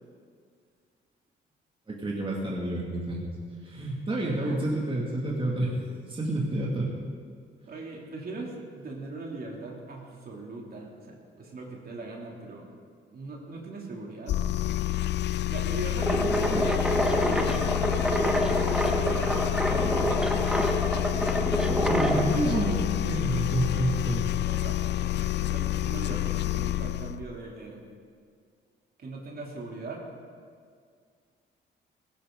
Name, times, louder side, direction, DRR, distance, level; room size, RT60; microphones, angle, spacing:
voice 1, 1.9-3.2 3.6-5.8 6.1-6.9 21.9-24.3, right 1 dB, 25° right, -3 dB, 2.6 m, -29 dB
voice 2, 7.7-12.6 13.1-14.7 14.9-15.2 15.5-16.7 17.1-20.4 22.4-22.7 24.5-27.8 29.0-30.0, right 3 dB, 50° right, -1 dB, 3.2 m, -40 dB
sound 1, 14.3-27.2, left 15 dB, 60° left, 0.4 m, -28 dB
sound 2, 16.0-22.4, equal, 5° right, 1.4 m, -27 dB
sound 3, 20.0-20.5 21.1-21.2 21.6-26.3, right 1 dB, 70° right, 2.7 m, -44 dB
17.0 x 17.0 x 4.0 m, 2.1 s
cardioid pair, 90°, 20 cm